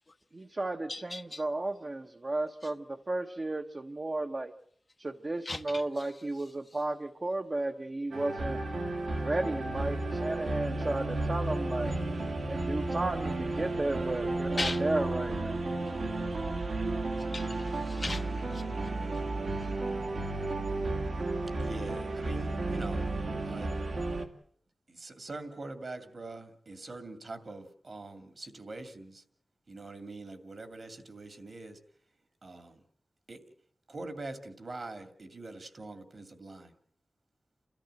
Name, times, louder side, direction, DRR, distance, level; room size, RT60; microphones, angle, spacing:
voice 1, 0.3-4.5 5.0-8.6 9.2-12.0 12.5-15.6, right 2 dB, 40° right, 1.1 m, -33 dB
voice 2, 0.9-1.4 2.6-2.7 5.4-6.1 14.6-14.8 17.2-18.6 19.6-19.7 20.3-20.4, left 2 dB, 40° left, 0.8 m, -38 dB
sound 1, 8.1-24.3, right 2 dB, 75° right, 2.3 m, -33 dB
voice 3, 21.6-23.1 23.4-23.7 24.9-29.2 29.7-31.8 32.4-32.8 33.3-33.4 33.9-36.7, right 2 dB, 55° right, 2.4 m, -43 dB
29.5 x 13.5 x 7.7 m
wide cardioid pair, 80°, 0 cm